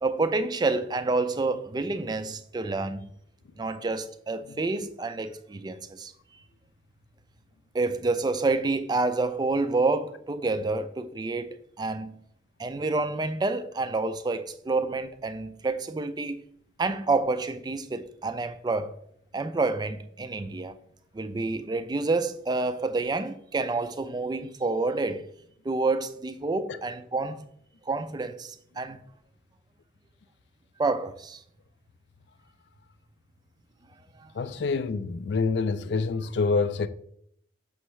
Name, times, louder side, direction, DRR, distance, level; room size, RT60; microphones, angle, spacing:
voice 1, 0.0-3.1 3.6-6.1 7.7-12.2 12.6-16.4 16.8-18.9 19.3-20.8 21.1-25.2 25.6-27.5 27.9-29.0 30.8-31.4 34.2-34.3, right 3 dB, 25° right, 0.3 m, -28 dB
voice 2, 34.3-36.9, left 4 dB, 65° left, 0.4 m, -26 dB
6.2 x 5.5 x 3.1 m
head